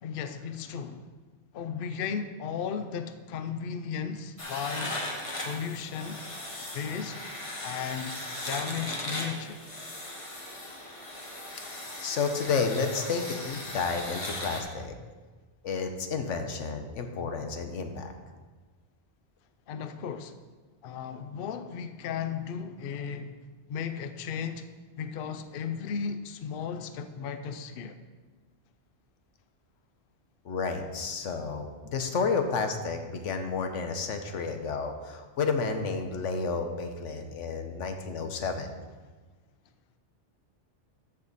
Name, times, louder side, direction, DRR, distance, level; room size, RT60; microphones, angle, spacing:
voice 1, 0.0-1.1 1.5-5.0 5.4-6.2 6.7-7.2 7.6-8.2 8.4-9.6 19.7-20.3 20.8-23.3 23.7-24.7 25.0-28.0, left 7 dB, 60° left, 9 dB, 0.7 m, -35 dB
sound 1, 4.4-14.6, left 1 dB, 30° left, 1.1 m, -38 dB
voice 2, 11.7-14.9 15.6-18.1 30.4-38.7, left 4 dB, 90° left, 6 dB, 1.2 m, -31 dB
13.5 x 5.4 x 4.1 m, 1.3 s
omnidirectional pair, 1.2 m